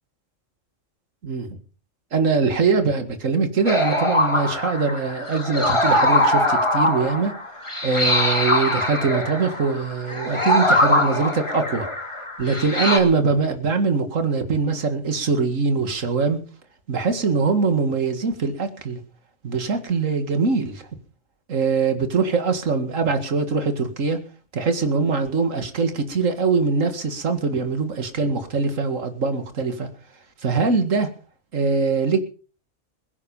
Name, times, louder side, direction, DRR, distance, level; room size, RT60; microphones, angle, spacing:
voice 1, 2.1-7.3 7.8-11.9 12.4-16.4 16.9-19.0 19.4-20.8 21.5-24.2 24.5-29.9 30.4-31.1 31.5-32.2, right 4 dB, 75° right, 2.3 m, -22 dB
sound 1, 3.7-13.0, left 1 dB, 20° left, 2.7 m, -22 dB
22.0 x 9.8 x 5.4 m
omnidirectional pair, 1.3 m